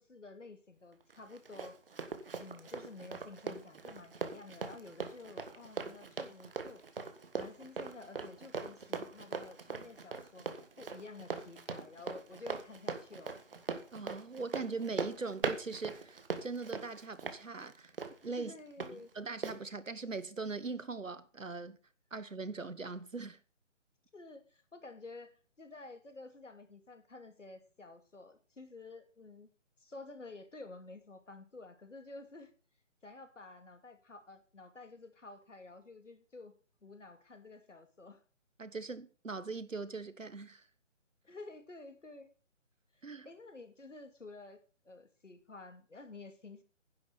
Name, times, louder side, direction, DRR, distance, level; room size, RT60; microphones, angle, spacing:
voice 1, 0.0-1.8 2.4-6.8 7.3-10.5 10.8-13.3 18.4-19.1 24.1-29.5 29.8-32.5 33.0-36.5 36.8-38.2 41.2-42.3 42.9-46.6, left 3 dB, 70° left, 2.8 m, -51 dB
Run, 1.1-18.9 19.4-19.6, right 4 dB, 45° right, 1.6 m, -41 dB
voice 2, 13.9-17.9 18.2-18.5 18.9-21.8 22.1-23.4 38.6-40.6 43.0-43.3, right 4 dB, 85° right, 1.3 m, -41 dB
10.5 x 7.5 x 6.9 m
figure-of-eight pair, 155°, 38 cm